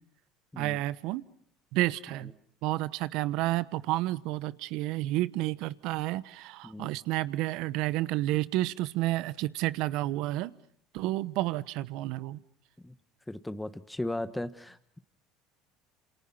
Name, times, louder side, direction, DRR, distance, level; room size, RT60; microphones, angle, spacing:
voice 1, 0.6-1.2 1.7-2.3 2.6-10.5 10.9-12.4, right 17 dB, 70° right, 17 dB, 1.0 m, -30 dB
voice 2, 13.3-15.0, left 1 dB, 10° left, 11 dB, 1.4 m, -36 dB
28.5 x 28.0 x 5.7 m, 0.65 s
hypercardioid pair, 75°, 0 cm